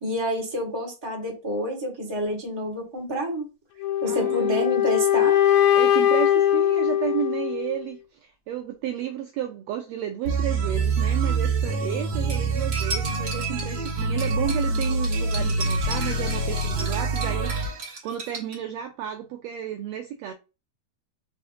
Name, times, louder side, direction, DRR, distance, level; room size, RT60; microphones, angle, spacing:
voice 1, 0.0-3.5 4.0-5.4, equal, 15° right, 1.0 m, -28 dB
sound 1, 3.8-7.8, left 11 dB, 75° left, 1.6 m, -21 dB
voice 2, 4.1-4.7 5.7-20.3, right 10 dB, 80° right, 1.5 m, -32 dB
sound 2, 10.3-17.8, right 3 dB, 65° right, 2.4 m, -26 dB
Cutlery silverware, 12.3-18.6, right 4 dB, 40° right, 1.6 m, -36 dB
5.5 x 3.3 x 2.7 m
omnidirectional pair, 3.5 m